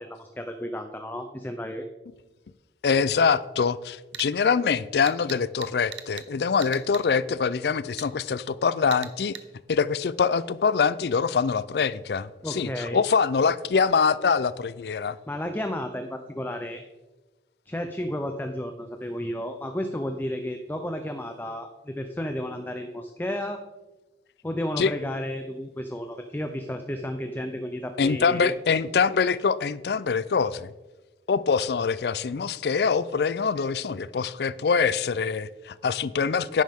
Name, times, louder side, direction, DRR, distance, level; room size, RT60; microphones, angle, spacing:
voice 1, 0.0-1.9 12.4-13.0 15.3-16.8 17.7-23.6 24.4-28.5, left 1 dB, 10° left, 0.5 m, -32 dB
voice 2, 2.8-9.4 9.7-15.2 24.8-24.9 28.0-30.7 31.3-36.6, left 5 dB, 65° left, 0.4 m, -24 dB
sound 1, 4.1-4.3 5.1-6.3 6.6-7.1 8.0-8.1 8.9-9.5, right 10 dB, 85° right, 0.9 m, -40 dB
11.0 x 9.5 x 3.6 m
head